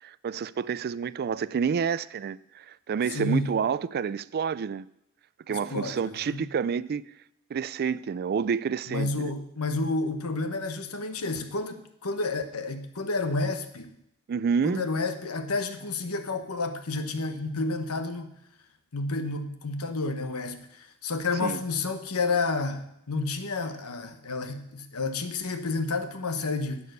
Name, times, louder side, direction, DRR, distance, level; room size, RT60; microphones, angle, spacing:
voice 1, 0.0-4.9 5.5-7.1 7.5-9.3 14.3-14.9 21.4-21.6, right 6 dB, 45° right, 0.3 m, -29 dB
voice 2, 3.1-3.5 5.5-6.4 8.9-13.9 14.6-18.3 18.9-26.8, left 3 dB, 75° left, 1.1 m, -30 dB
11.0 x 8.6 x 6.6 m
head